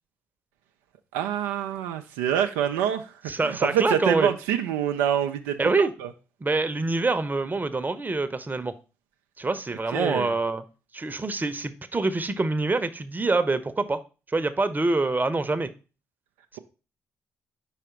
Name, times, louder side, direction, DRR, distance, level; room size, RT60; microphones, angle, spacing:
voice 1, 1.1-6.1 9.9-10.3, right 10 dB, 85° right, 5 dB, 0.4 m, -26 dB
voice 2, 3.3-4.3 5.6-5.9 6.4-8.7 9.4-10.6 10.9-14.0 14.3-15.7, right 3 dB, 25° right, 11 dB, 0.8 m, -25 dB
4.9 x 4.9 x 4.4 m, 0.33 s
hypercardioid pair, 40°, 7 cm